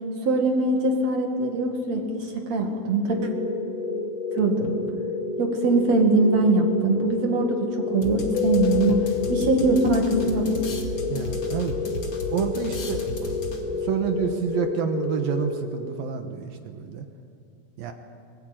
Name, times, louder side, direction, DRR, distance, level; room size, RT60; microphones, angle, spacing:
voice 1, 0.2-3.3 4.3-4.8 5.4-9.0 9.3-10.6, right 2 dB, 45° right, 2 dB, 2.3 m, -22 dB
sound 1, 3.1-16.2, left 3 dB, 5° right, 0.7 m, -30 dB
sound 2, 8.0-13.9, left 2 dB, 45° left, 1.9 m, -34 dB
Keyboard (musical), 8.4-10.9, left 15 dB, 85° left, 2.2 m, -29 dB
voice 2, 11.1-11.8 12.3-13.3 13.7-17.0 17.8-17.9, right 7 dB, 75° right, 5 dB, 2.1 m, -29 dB
22.5 x 22.0 x 9.0 m, 2.4 s
omnidirectional pair, 5.9 m